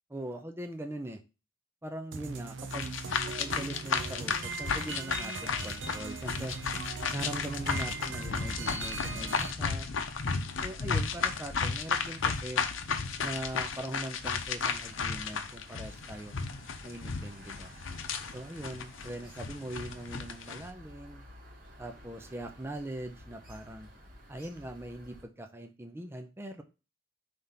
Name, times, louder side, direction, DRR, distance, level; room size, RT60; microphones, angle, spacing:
voice 1, 0.1-1.2 1.8-2.9 3.4-6.6 7.1-9.9 10.6-12.7 13.2-16.3 16.8-17.7 18.3-21.2 21.8-23.9 24.3-26.6, right 1 dB, 10° right, 5 dB, 0.5 m, -41 dB
sound 1, 2.1-9.5, right 4 dB, 70° right, 0.7 m, -39 dB
sound 2, 2.7-20.7, left 5 dB, 80° left, 0.7 m, -34 dB
sound 3, 5.8-25.2, equal, 45° right, 1.5 m, -54 dB
5.3 x 3.5 x 5.6 m, 0.31 s
head